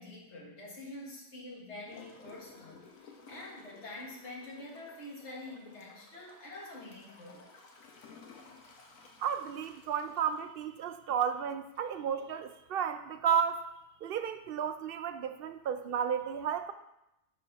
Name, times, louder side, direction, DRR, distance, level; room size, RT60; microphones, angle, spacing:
voice 1, 0.0-7.4, left 2 dB, 55° left, -3 dB, 2.1 m, -46 dB
Gurgling / Toilet flush, 1.9-11.3 11.8-11.9, left 4 dB, 75° left, 1.4 m, -56 dB
voice 2, 9.2-13.7 14.0-16.7, right 7 dB, 65° right, 9 dB, 0.6 m, -33 dB
10.0 x 4.2 x 4.0 m, 0.86 s
omnidirectional pair, 1.4 m